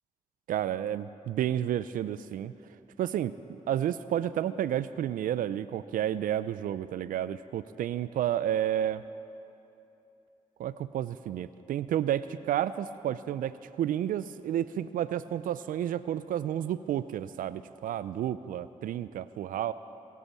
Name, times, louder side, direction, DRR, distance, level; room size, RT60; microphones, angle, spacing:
voice 1, 0.5-2.5 3.0-3.3 3.7-9.0 10.6-19.7, right 11 dB, 80° right, 15 dB, 0.4 m, -31 dB
21.5 x 8.3 x 7.1 m, 2.9 s
supercardioid pair, 50°, 14 cm